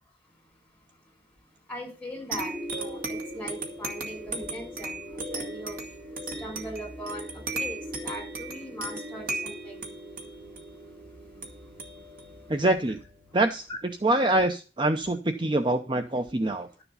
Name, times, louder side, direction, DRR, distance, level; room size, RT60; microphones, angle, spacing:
voice 1, 1.7-2.5 2.8-5.0 5.3-5.8 6.4-7.3 7.5-9.8 13.7-13.8, equal, 5° left, 5.8 m, -39 dB
sound 1, 2.3-13.4, right 2 dB, 50° right, 2.1 m, -37 dB
voice 2, 12.5-13.0 13.3-16.7, right 1 dB, 25° right, 0.6 m, -25 dB
12.0 x 7.1 x 5.5 m
head